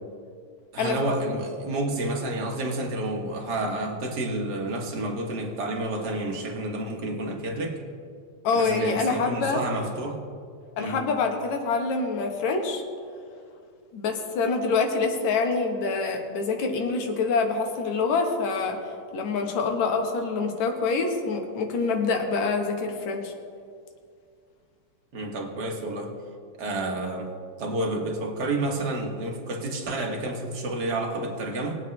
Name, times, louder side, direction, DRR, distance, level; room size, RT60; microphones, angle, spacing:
voice 1, 0.7-7.8 8.5-10.2 10.8-11.0 25.1-26.1 26.6-27.3 27.6-31.8, right 1 dB, 50° right, 1 dB, 1.3 m, -30 dB
voice 2, 8.4-9.6 10.8-12.8 13.9-23.3, left 4 dB, 70° left, 3 dB, 2.4 m, -26 dB
21.0 x 8.5 x 3.2 m, 2.2 s
omnidirectional pair, 3.4 m